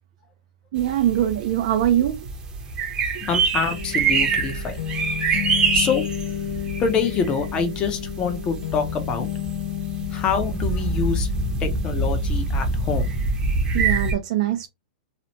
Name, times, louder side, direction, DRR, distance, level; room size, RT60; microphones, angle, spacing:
voice 1, 0.7-2.2 13.7-14.7, right 12 dB, 55° right, 0.4 m, -22 dB
sound 1, 0.8-14.1, right 4 dB, 20° right, 0.7 m, -25 dB
voice 2, 3.2-4.8 5.7-6.0 6.8-9.3 10.1-11.3 11.6-13.1, left 5 dB, 20° left, 0.6 m, -25 dB
sound 2, 3.7-13.3, left 11 dB, 70° left, 0.5 m, -32 dB
2.8 x 2.1 x 2.9 m
hypercardioid pair, 155°, 4 cm